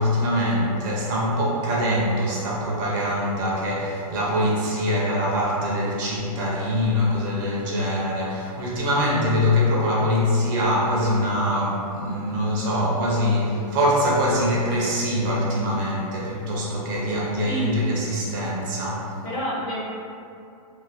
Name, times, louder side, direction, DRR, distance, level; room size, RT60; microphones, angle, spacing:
voice 1, 0.0-19.1, equal, 35° right, -4 dB, 0.5 m, -23 dB
voice 2, 17.4-18.0 19.2-19.8, right 1 dB, 25° left, -7 dB, 0.5 m, -29 dB
2.6 x 2.3 x 3.3 m, 2.5 s
hypercardioid pair, 160°, 19 cm